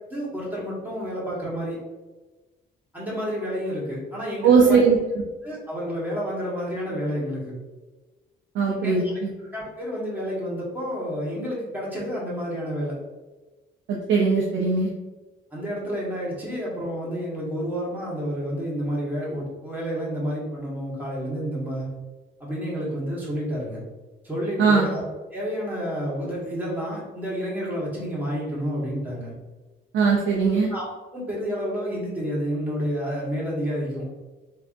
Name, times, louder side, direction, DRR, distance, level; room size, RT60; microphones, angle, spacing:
voice 1, 0.1-1.8 2.9-4.8 5.4-7.5 8.8-9.1 9.4-13.0 15.5-21.9 22.4-23.8 24.2-25.0 25.3-29.3 30.7-30.9 31.1-34.1, equal, 10° right, -6 dB, 1.5 m, -30 dB
voice 2, 4.4-5.0 8.6-9.0 13.9-14.9 24.6-24.9 29.9-30.7, right 5 dB, 70° right, -2 dB, 0.5 m, -19 dB
3.3 x 2.7 x 2.5 m, 1.2 s
cardioid pair, 90°, 20 cm